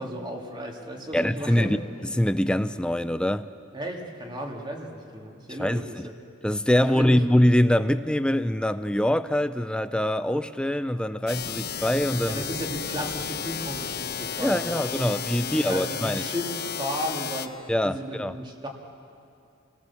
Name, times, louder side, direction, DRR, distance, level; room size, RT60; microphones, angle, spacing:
voice 1, 0.0-1.7 3.7-6.1 6.9-7.1 12.3-18.7, equal, 20° right, 2.4 m, -35 dB
voice 2, 1.1-1.8 2.0-3.5 5.6-6.1 6.4-12.4 14.4-16.2 17.7-18.4, left 1 dB, 5° left, 0.5 m, -24 dB
sound 1, 11.3-17.5, left 8 dB, 50° left, 1.1 m, -33 dB
28.5 x 18.0 x 7.2 m
head